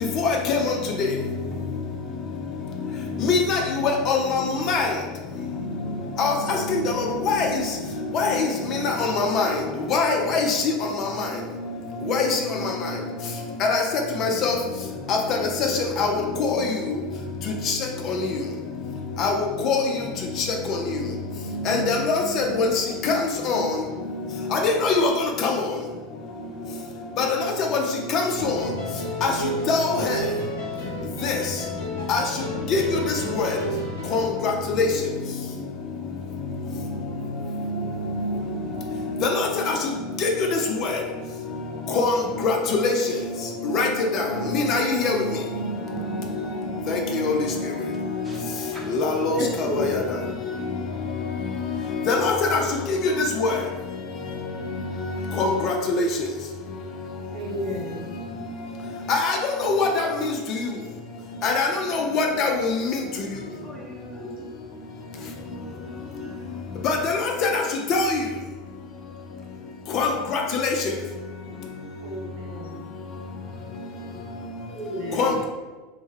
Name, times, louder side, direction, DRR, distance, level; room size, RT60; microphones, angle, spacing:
voice 1, 0.2-0.7 1.0-1.1 3.2-4.9 6.2-7.6 8.1-9.6 9.9-10.6 11.0-11.1 12.0-12.7 13.6-13.8 14.2-14.6 15.1-15.4 15.7-16.1 16.4-16.6 17.7-17.8 19.2-19.3 19.6-19.8 21.7-23.2 23.5-23.8 24.5-25.1 25.4-25.5 27.2-27.3 27.7-27.8 28.1-28.6 29.2-29.3 29.7-30.1 31.2-31.3 32.1-32.2 32.7-33.5 34.1-34.8 37.6-37.8 38.1-38.3 39.2-39.8 40.2-41.0 41.9-42.1 42.4-43.3 43.7-44.3 44.5-45.2 45.9-46.0 46.9-47.6 48.9-50.0 52.1-52.6 52.9-53.1 53.4-53.5 55.4-56.0 59.1-60.1 61.4-62.9 66.8-67.6 67.9-68.2 69.9-70.7 75.2-75.4, left 4 dB, 50° left, 1 dB, 0.4 m, -23 dB
voice 2, 14.8-15.1 48.2-48.9 63.6-64.6 65.2-67.0 69.5-69.7 71.4-72.6, right 1 dB, 10° right, -3 dB, 0.8 m, -44 dB
sound 1, 28.3-34.4, equal, 85° left, 0.7 m, -32 dB
voice 3, 49.3-49.9 52.4-52.9 57.3-58.0 63.3-63.4 65.7-66.0 72.0-72.8 74.7-75.4, right 1 dB, 60° right, -2 dB, 0.7 m, -32 dB
2.2 x 2.1 x 3.1 m, 1.3 s
hypercardioid pair, 80°, 0 cm